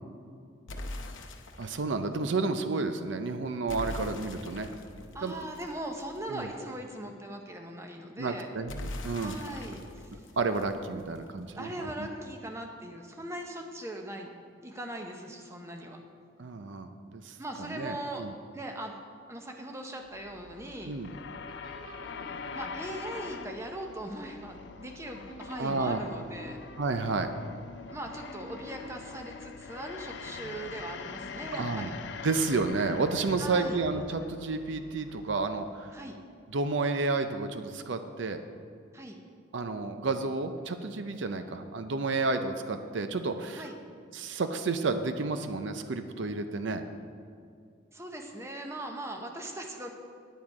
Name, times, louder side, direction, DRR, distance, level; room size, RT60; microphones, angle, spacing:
sound 1, 0.7-1.9 3.7-6.4 8.7-11.4, left 1 dB, 80° left, 0.8 m, -42 dB
voice 1, 1.6-4.7 5.2-5.5 6.3-6.5 8.2-9.3 10.4-12.1 16.4-17.4 17.7-18.3 20.9-21.1 25.6-26.0 26.8-27.3 31.5-31.9 32.2-35.9 36.5-38.4 39.5-43.7 44.1-46.8, right 3 dB, 70° right, 8 dB, 0.5 m, -31 dB
voice 2, 5.1-8.5 9.2-10.2 11.5-14.3 14.6-16.0 17.4-18.2 18.5-18.9 19.3-20.9 22.5-26.6 27.9-32.0 33.4-33.8 35.9-36.2 38.9-39.2 43.5-43.8 47.9-49.9, right 1 dB, 15° right, 3 dB, 0.7 m, -40 dB
sound 2, 20.0-36.4, left 5 dB, 60° left, 0.4 m, -44 dB
sound 3, 21.5-24.9 25.3-28.0 28.3-30.3 30.8-32.4 33.5-34.0, left 1 dB, 45° right, 1.9 m, -50 dB
9.4 x 9.1 x 4.8 m, 2.3 s
head